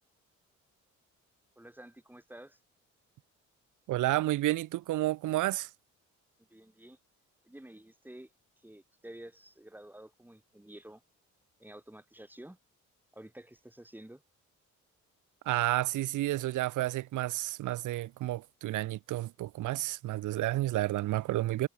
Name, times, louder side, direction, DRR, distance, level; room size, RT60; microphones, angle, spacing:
voice 1, 1.6-2.6 6.5-7.0 7.4-8.3 8.6-11.0 11.6-12.6 13.1-14.2, right 1 dB, 5° right, 7.2 m, -50 dB
voice 2, 3.9-5.7 15.4-21.7, right 16 dB, 80° right, 1.1 m, -31 dB
cardioid pair, 90°, 30 cm